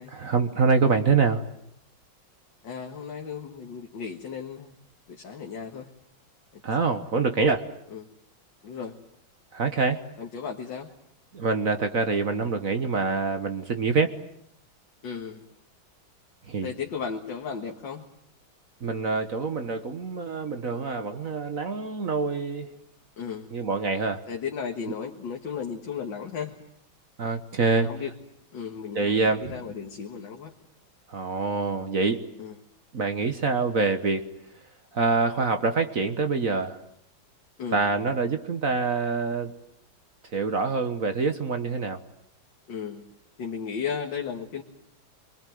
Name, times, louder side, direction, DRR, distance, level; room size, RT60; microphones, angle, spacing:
voice 1, 0.0-1.4 6.6-7.7 9.5-10.0 11.3-14.1 16.5-16.7 18.8-22.7 23.5-24.2 27.2-27.9 28.9-29.5 31.1-32.2 32.9-34.3 34.9-36.8 37.7-39.5 40.3-42.0, right 4 dB, 45° right, 8 dB, 1.5 m, -25 dB
voice 2, 2.6-4.7 5.1-5.9 7.9-8.0 8.6-9.0 10.2-10.9 15.0-15.4 16.6-18.1 23.2-23.5 24.3-26.6 27.6-28.1 28.5-30.5 32.4-32.6 37.6-37.8 42.7-43.1 43.4-44.6, left 6 dB, 65° left, 2 dB, 2.3 m, -35 dB
27.5 x 22.0 x 9.3 m, 0.73 s
omnidirectional pair, 2.2 m